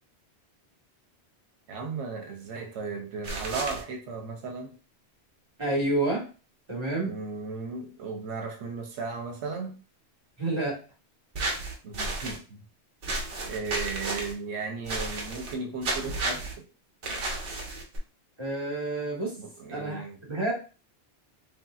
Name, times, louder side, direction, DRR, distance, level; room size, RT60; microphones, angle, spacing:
voice 1, 1.7-4.8 7.0-9.8 11.8-12.6 13.5-16.7 19.4-20.2, right 4 dB, 90° right, 0.9 m, -36 dB
sound 1, 3.2-3.8 11.3-12.4 13.0-14.3 14.9-15.5 15.8-16.5 17.0-18.0, right 2 dB, 60° right, 0.9 m, -32 dB
voice 2, 5.6-6.2 6.7-7.1 10.4-10.8 18.4-19.3 19.7-20.5, right 2 dB, 25° right, 1.1 m, -29 dB
3.1 x 2.7 x 2.3 m
omnidirectional pair, 1.1 m